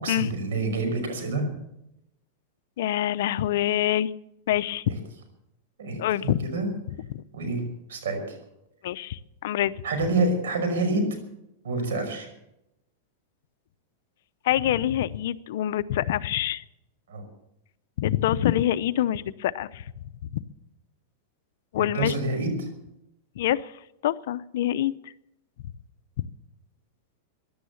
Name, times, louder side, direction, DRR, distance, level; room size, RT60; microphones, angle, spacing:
voice 1, 0.0-1.6 5.8-6.7 7.3-7.6 7.9-8.4 9.8-11.1 11.6-12.3 17.1-17.2 21.9-22.7, right 2 dB, 85° right, 7 dB, 5.7 m, -27 dB
voice 2, 2.8-4.1 4.5-4.8 6.0-6.4 7.1-7.2 8.8-9.7 14.4-16.6 18.0-19.8 21.7-22.1 23.4-23.7 24.0-24.9 26.2-26.3, left 12 dB, 70° left, 14 dB, 0.7 m, -25 dB
17.0 x 11.0 x 7.1 m, 0.84 s
supercardioid pair, 145°, 0 cm